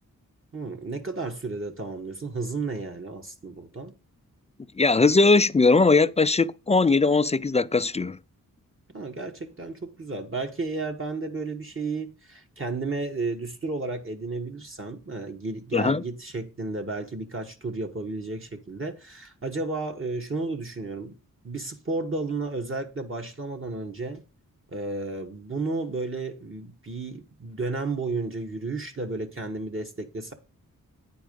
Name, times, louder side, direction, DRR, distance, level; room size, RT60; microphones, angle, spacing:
voice 1, 0.5-3.9 8.9-21.2 21.4-24.2 24.7-30.3, right 3 dB, 40° right, 1.4 m, -32 dB
voice 2, 4.8-8.2 15.7-16.0, left 3 dB, 20° left, 0.3 m, -20 dB
9.5 x 4.6 x 5.2 m
wide cardioid pair, 90°, 33 cm